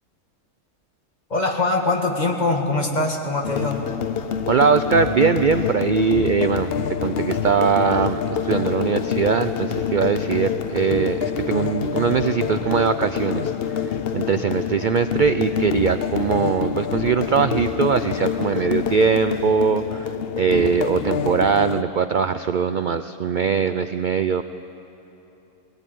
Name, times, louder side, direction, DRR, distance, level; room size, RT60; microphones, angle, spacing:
voice 1, 1.3-3.8, left 2 dB, 30° left, 1 dB, 2.1 m, -22 dB
sound 1, 3.4-21.8, left 7 dB, 55° left, 0.8 m, -26 dB
voice 2, 4.5-6.7 7.0-13.5 13.9-20.1 20.4-24.4, right 6 dB, 90° right, 10 dB, 0.4 m, -21 dB
19.5 x 18.0 x 9.1 m, 3.0 s
omnidirectional pair, 1.5 m